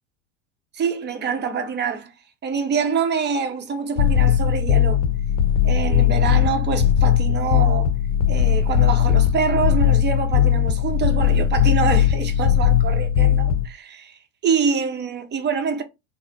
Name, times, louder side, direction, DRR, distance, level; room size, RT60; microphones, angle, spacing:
voice 1, 0.7-2.1 2.4-5.0 5.6-7.9 8.3-15.8, right 6 dB, 30° right, 0.8 m, -25 dB
sound 1, 4.0-13.7, left 9 dB, 65° left, 0.6 m, -18 dB
3.1 x 2.1 x 3.9 m
hypercardioid pair, 85°, 36 cm